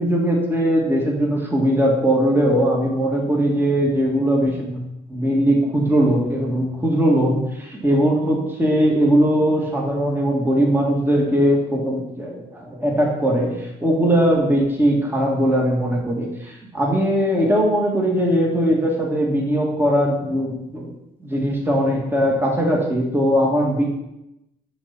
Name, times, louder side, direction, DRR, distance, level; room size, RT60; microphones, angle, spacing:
voice 1, 0.0-4.8 5.1-20.9 21.2-23.8, equal, 10° right, -2 dB, 2.3 m, -20 dB
10.5 x 4.2 x 4.2 m, 0.88 s
hypercardioid pair, 55°, 21 cm